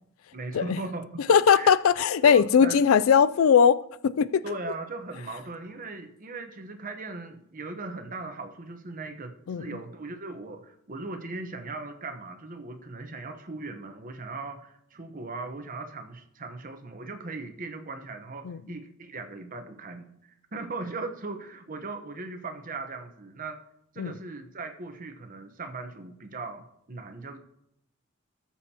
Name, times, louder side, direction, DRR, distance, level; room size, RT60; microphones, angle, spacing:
voice 1, 0.3-1.8 2.2-2.8 4.4-23.6 23.9-27.4, right 3 dB, 40° right, 1.0 m, -38 dB
voice 2, 1.3-4.4 9.5-9.7 18.4-18.6 24.0-24.1, left 7 dB, 80° left, 0.4 m, -20 dB
17.5 x 7.1 x 2.9 m
head